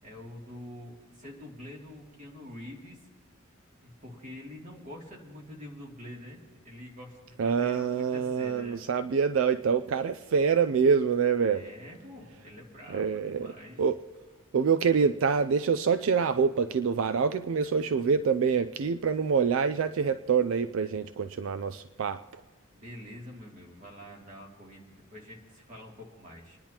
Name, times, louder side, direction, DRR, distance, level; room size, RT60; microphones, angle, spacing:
voice 1, 0.0-3.0 3.8-8.9 11.4-13.8 22.7-26.6, left 1 dB, 40° right, -2 dB, 2.7 m, -46 dB
voice 2, 7.4-11.6 12.9-13.5 13.8-14.0 14.5-22.4, right 6 dB, 70° right, 11 dB, 0.4 m, -26 dB
27.5 x 10.5 x 2.9 m, 1.5 s
head